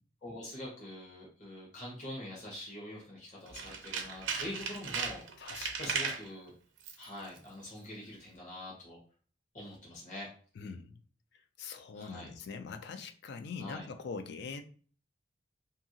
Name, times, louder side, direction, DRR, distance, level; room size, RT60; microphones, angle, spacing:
voice 1, 0.2-5.2 5.8-6.5 7.0-9.0 9.5-10.3 11.9-12.3 13.6-13.9, left 1 dB, 40° left, 0.9 m, -44 dB
Tools, 3.5-6.3 6.8-7.1 7.4-7.5, right 5 dB, 80° right, 0.6 m, -36 dB
voice 2, 5.4-6.0 10.6-11.0 11.6-14.6, left 5 dB, 65° left, 0.4 m, -43 dB
2.8 x 2.6 x 2.7 m
head